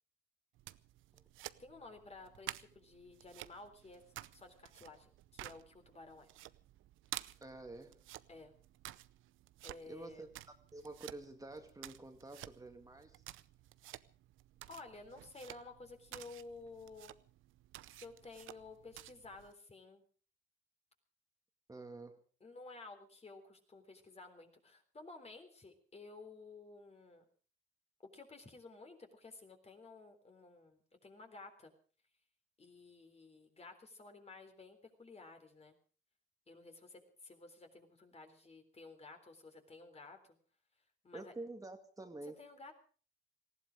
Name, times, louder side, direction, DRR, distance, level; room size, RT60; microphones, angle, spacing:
sound 1, 0.5-19.5, right 15 dB, 85° right, 0.7 m, -52 dB
voice 1, 1.6-4.0 4.3-6.3 8.3-8.5 9.6-10.3 14.7-17.1 17.9-20.0 22.4-27.2 28.1-31.7 32.6-35.8 36.5-40.4 41.0-41.3 42.4-42.7, left 3 dB, 30° left, 5 dB, 3.8 m, -54 dB
voice 2, 7.4-8.0 9.9-10.3 10.7-13.2 21.7-22.2 41.1-42.4, right 2 dB, 15° right, 5 dB, 2.1 m, -49 dB
19.0 x 15.5 x 5.0 m, 0.41 s
cardioid pair, 90°, 20 cm